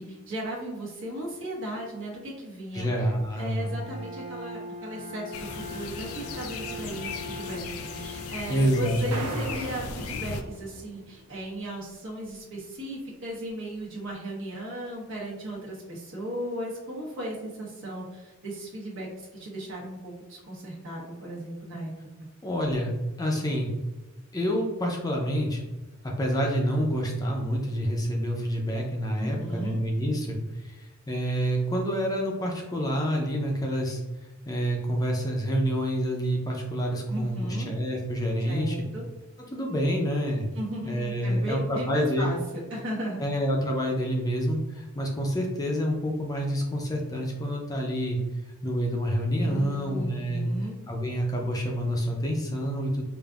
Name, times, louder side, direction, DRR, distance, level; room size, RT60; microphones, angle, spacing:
voice 1, 0.0-3.1 3.3-21.9 22.2-22.3 29.2-29.8 37.1-37.7 38.5-39.1 40.5-43.2 49.4-50.8, right 1 dB, 60° right, -4 dB, 1.1 m, -36 dB
voice 2, 2.7-3.7 8.5-9.2 22.4-23.7 24.3-25.6 26.0-34.0 34.5-38.8 39.5-40.5 40.8-42.3 43.2-48.2 48.6-50.4 50.9-53.1, equal, 15° left, 0 dB, 0.5 m, -27 dB
Bowed string instrument, 3.6-9.5, left 1 dB, 25° right, 0.6 m, -41 dB
sound 1, 5.3-10.4, left 5 dB, 75° left, 0.4 m, -37 dB
sound 2, 9.1-11.5, right 2 dB, 85° right, 0.6 m, -39 dB
5.0 x 2.5 x 2.4 m, 1.1 s
head